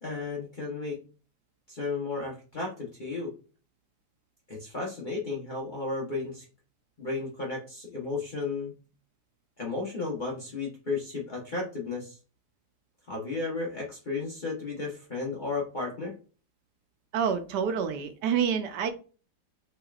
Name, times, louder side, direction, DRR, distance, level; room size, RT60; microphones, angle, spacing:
voice 1, 0.0-1.0 1.7-3.3 4.5-6.4 7.0-8.7 9.6-12.2 13.1-16.1, left 3 dB, 40° left, -4 dB, 0.7 m, -33 dB
voice 2, 17.1-18.9, right 7 dB, 75° right, 8 dB, 1.1 m, -27 dB
4.3 x 3.2 x 2.3 m, 0.36 s
omnidirectional pair, 1.9 m